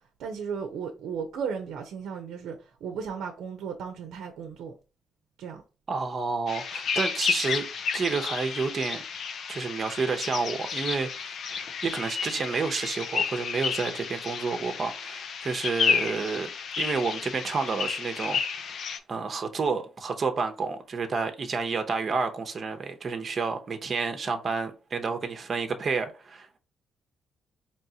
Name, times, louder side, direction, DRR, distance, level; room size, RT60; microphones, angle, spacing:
voice 1, 0.2-4.7 5.4-5.6, right 6 dB, 80° right, 0.6 m, -35 dB
voice 2, 5.9-7.7 7.9-9.0 9.5-11.1 11.5-16.5 16.8-18.4 19.1-26.6, right 4 dB, 45° right, 0.7 m, -30 dB
sound 1, 6.5-19.0, left 6 dB, 60° left, 0.5 m, -31 dB
4.6 x 3.0 x 2.8 m
cardioid pair, 90°, 0 cm